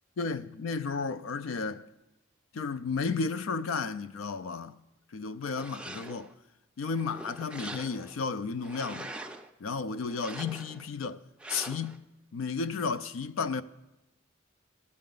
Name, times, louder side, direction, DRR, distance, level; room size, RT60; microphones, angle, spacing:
voice 1, 0.2-1.9 2.5-4.8 5.1-6.3 6.8-9.1 9.6-11.2 11.5-12.0 12.3-13.6, left 4 dB, 90° left, 0.4 m, -33 dB
Skates on Ice, 5.4-6.3 6.8-8.2 8.6-9.5 10.1-10.9 11.4-12.0, right 2 dB, 5° right, 0.3 m, -43 dB
14.0 x 7.5 x 3.9 m
head